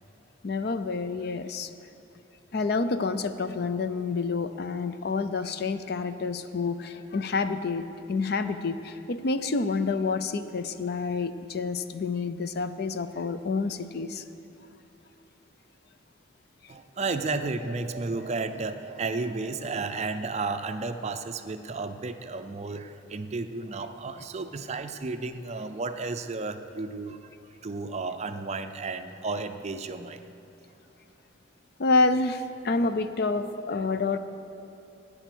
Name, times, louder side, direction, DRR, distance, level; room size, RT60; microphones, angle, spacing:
voice 1, 0.4-1.7 2.5-14.2 16.6-16.7 31.8-34.2, left 3 dB, 55° left, 11 dB, 0.5 m, -28 dB
voice 2, 16.7-27.3 27.6-30.2, right 3 dB, 35° right, 9 dB, 0.5 m, -33 dB
12.5 x 9.0 x 6.1 m, 2.8 s
head